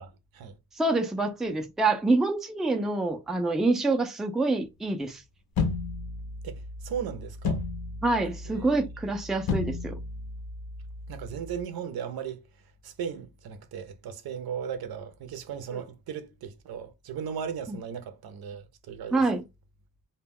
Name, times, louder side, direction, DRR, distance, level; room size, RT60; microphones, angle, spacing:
voice 1, 0.0-0.6 6.4-7.6 8.5-8.8 11.1-12.4 12.8-19.2, right 7 dB, 85° right, 0.6 m, -37 dB
voice 2, 0.7-5.2 8.0-10.0 15.7-15.8 17.7-17.8 19.1-19.4, right 2 dB, ahead, 0.3 m, -26 dB
sound 1, 5.6-11.6, left 4 dB, 80° left, 0.6 m, -34 dB
2.2 x 2.2 x 3.4 m
wide cardioid pair, 135°, 36 cm